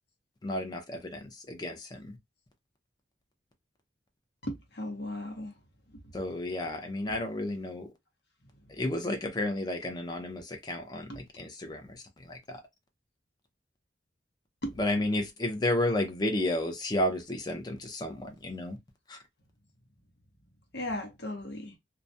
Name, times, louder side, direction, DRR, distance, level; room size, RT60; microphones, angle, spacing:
voice 1, 0.4-2.2 6.1-7.9 8.7-12.6 14.7-18.8 19.1-19.2, left 1 dB, 20° left, 0.5 m, -32 dB
voice 2, 4.5-5.5 5.9-6.0 7.0-7.2 8.8-8.9 11.1-11.2 14.6-14.8 20.7-21.8, left 1 dB, 65° left, 0.8 m, -37 dB
2.3 x 2.1 x 2.6 m
head